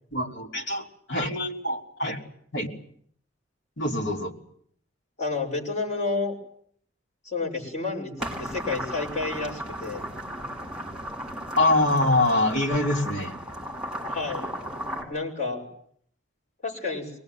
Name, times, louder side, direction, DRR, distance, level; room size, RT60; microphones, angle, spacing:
voice 1, 0.1-2.2 2.5-2.7 3.8-4.3 11.6-13.3, left 2 dB, 60° left, 1 dB, 3.4 m, -24 dB
voice 2, 5.2-6.4 7.2-10.1 14.1-14.4 15.1-15.7 16.6-17.1, left 3 dB, 35° left, -1 dB, 6.3 m, -30 dB
sound 1, 8.2-15.0, equal, 5° right, 5.9 m, -35 dB
25.0 x 19.5 x 9.4 m, 0.65 s
head